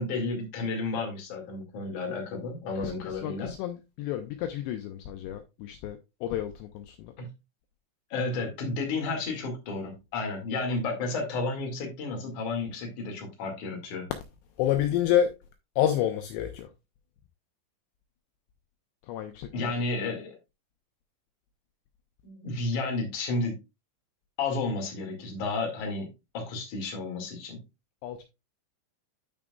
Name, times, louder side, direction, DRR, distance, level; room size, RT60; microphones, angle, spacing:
voice 1, 0.0-3.5 7.2-7.3 8.1-14.1 19.5-20.4 22.2-23.6 24.4-27.6, left 3 dB, 50° left, 2.8 m, -32 dB
voice 2, 2.8-7.1 14.6-15.3 15.8-16.7 19.0-19.7 28.0-28.2, left 11 dB, 85° left, 2.5 m, -29 dB
12.5 x 5.0 x 2.3 m
omnidirectional pair, 5.6 m